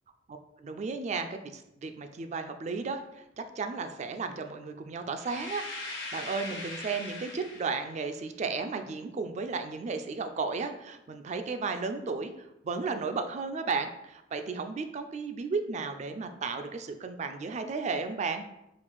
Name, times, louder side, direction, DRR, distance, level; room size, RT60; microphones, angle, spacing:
voice 1, 0.3-18.5, right 4 dB, 40° right, 7 dB, 0.3 m, -34 dB
sound 1, 5.2-8.0, left 2 dB, 80° left, 1.1 m, -40 dB
4.3 x 2.4 x 3.8 m, 0.89 s
head